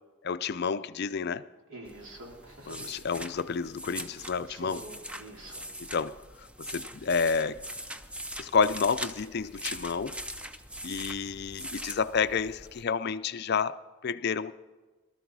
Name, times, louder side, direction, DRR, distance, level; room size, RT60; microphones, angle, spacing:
voice 1, 0.2-1.5 2.7-4.9 5.8-7.6 8.4-10.2 10.8-14.5, left 5 dB, 45° left, 13 dB, 0.4 m, -30 dB
voice 2, 1.7-2.9 4.5-5.7, right 2 dB, 60° right, -1 dB, 3.4 m, -46 dB
sound 1, 1.8-12.8, equal, 5° right, 0.5 m, -42 dB
19.0 x 13.0 x 4.7 m, 1.3 s
head